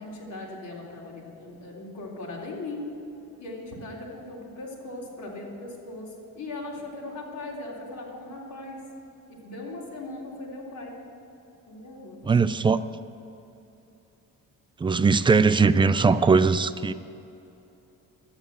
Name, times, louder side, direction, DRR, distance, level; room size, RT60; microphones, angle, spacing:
voice 1, 0.0-2.9 3.4-8.8 9.3-11.0 11.7-12.6, left 2 dB, 60° left, -4 dB, 3.4 m, -39 dB
voice 2, 12.2-12.8 14.8-16.9, right 4 dB, 15° right, 12 dB, 0.3 m, -20 dB
12.0 x 9.1 x 8.3 m, 2.9 s
cardioid pair, 130°, 34 cm